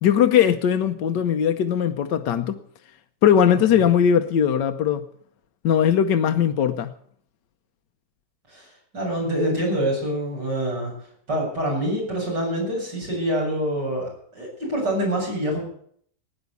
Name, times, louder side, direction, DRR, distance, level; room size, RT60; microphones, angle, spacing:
voice 1, 0.0-2.6 3.2-5.0 5.6-6.9, left 9 dB, 80° left, 1.5 m, -19 dB
voice 2, 8.5-10.9 11.3-15.6, right 1 dB, 75° right, 8.4 m, -26 dB
17.0 x 10.0 x 8.3 m
omnidirectional pair, 1.9 m